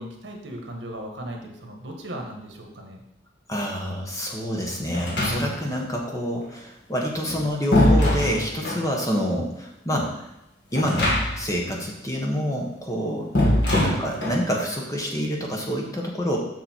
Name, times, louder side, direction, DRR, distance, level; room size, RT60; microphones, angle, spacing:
voice 1, 0.0-3.0 13.7-14.0, right 1 dB, 70° right, 1 dB, 1.5 m, -37 dB
voice 2, 3.5-10.3 10.7-13.3 13.8-16.4, equal, 15° left, -1 dB, 1.2 m, -27 dB
sound 1, 4.9-5.8 7.1-8.9 10.7-11.6 11.8-11.9 13.3-14.5, left 1 dB, 60° left, 2.0 m, -22 dB
6.9 x 6.4 x 4.5 m, 0.87 s
head